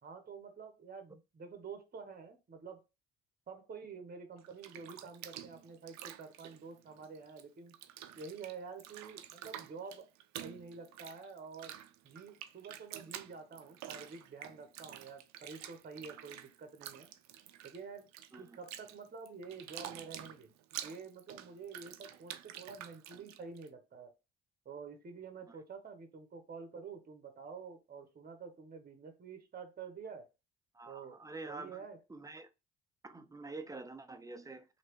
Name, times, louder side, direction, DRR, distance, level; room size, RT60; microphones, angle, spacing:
voice 1, 0.0-2.8 3.5-7.8 8.1-10.1 10.4-11.8 12.0-17.1 17.6-18.1 18.4-20.5 20.8-24.1 24.6-30.3 30.9-31.2 31.4-32.0, right 5 dB, 30° right, 0.9 m, -48 dB
Bathtub (filling or washing), 4.4-7.4 7.7-23.7, right 11 dB, 70° right, 0.5 m, -49 dB
voice 2, 30.7-31.8 32.1-32.5 33.0-34.7, right 3 dB, 10° right, 0.5 m, -47 dB
3.2 x 2.8 x 3.0 m
hypercardioid pair, 55°, 29 cm